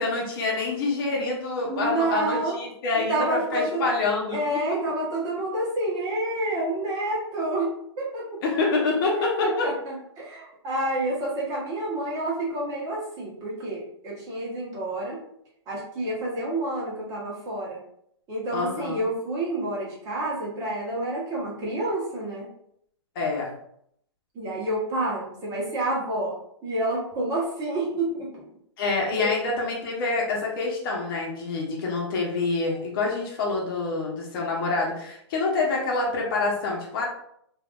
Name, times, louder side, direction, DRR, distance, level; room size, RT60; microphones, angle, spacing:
voice 1, 0.0-4.8 8.4-9.7 18.5-19.1 23.1-23.5 28.8-37.0, left 3 dB, 50° left, -2 dB, 0.9 m, -26 dB
voice 2, 1.6-2.6 2.9-3.9 4.3-8.3 9.2-15.2 15.7-17.8 18.3-22.5 24.3-26.3 26.6-28.4 29.2-29.4, right 1 dB, 25° right, -4 dB, 1.1 m, -29 dB
3.2 x 2.5 x 2.4 m, 0.72 s
hypercardioid pair, 130°, 15 cm